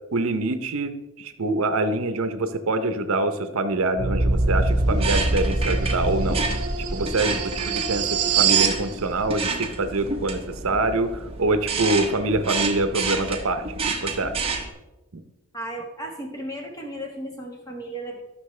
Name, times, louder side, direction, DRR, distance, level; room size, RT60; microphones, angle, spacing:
voice 1, 0.1-6.4 6.9-14.5, right 2 dB, 70° right, 9 dB, 0.7 m, -25 dB
sound 1, 4.0-8.8, right 3 dB, 50° right, 1.0 m, -23 dB
sound 2, 4.6-14.7, right 4 dB, 25° right, 0.9 m, -30 dB
voice 2, 15.5-18.2, right 1 dB, 15° left, 1 dB, 1.4 m, -35 dB
13.5 x 6.1 x 3.2 m, 1.0 s
head